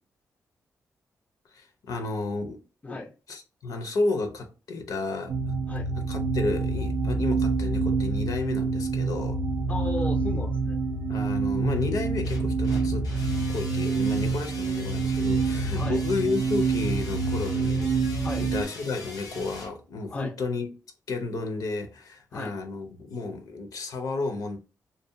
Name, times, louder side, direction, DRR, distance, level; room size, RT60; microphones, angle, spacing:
voice 1, 1.5-2.6 2.9-3.0 3.3-5.3 5.9-9.4 11.1-13.1 13.5-20.7 21.1-24.6, left 3 dB, 65° left, 0.6 m, -32 dB
sound 1, 5.3-18.6, right 4 dB, 50° right, 0.4 m, -27 dB
voice 2, 9.7-10.8 15.7-16.0 18.2-18.5 20.1-20.3 22.3-22.5, left 2 dB, 20° left, 0.3 m, -35 dB
sound 2, 12.2-19.7, left 2 dB, 85° left, 1.0 m, -41 dB
2.6 x 2.1 x 2.6 m
wide cardioid pair, 125°, 6 cm